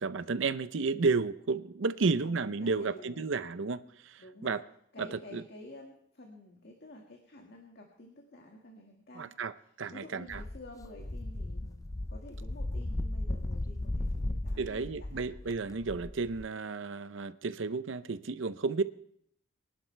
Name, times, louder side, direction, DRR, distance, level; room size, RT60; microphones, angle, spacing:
voice 1, 0.0-4.6 5.0-5.4 9.2-10.4 14.6-18.8, right 4 dB, 70° right, 0.7 m, -32 dB
voice 2, 2.0-3.4 4.2-4.6 4.9-9.4 9.9-15.3, left 1 dB, 55° left, 1.9 m, -50 dB
sound 1, 10.3-16.5, left 1 dB, 15° left, 0.4 m, -36 dB
23.5 x 11.5 x 3.3 m
head